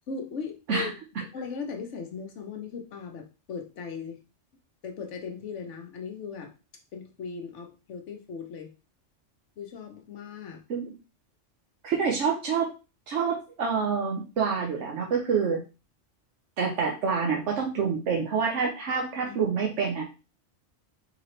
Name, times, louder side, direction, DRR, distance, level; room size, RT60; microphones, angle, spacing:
voice 1, 0.1-1.0 1.3-4.2 4.8-6.5 6.9-8.7 9.6-10.6 19.3-19.4, left 5 dB, 80° left, 3 dB, 1.2 m, -38 dB
voice 2, 11.8-12.7 13.1-15.6 16.6-20.1, right 6 dB, 80° right, -1 dB, 1.1 m, -27 dB
4.8 x 3.0 x 3.1 m, 0.30 s
omnidirectional pair, 1.2 m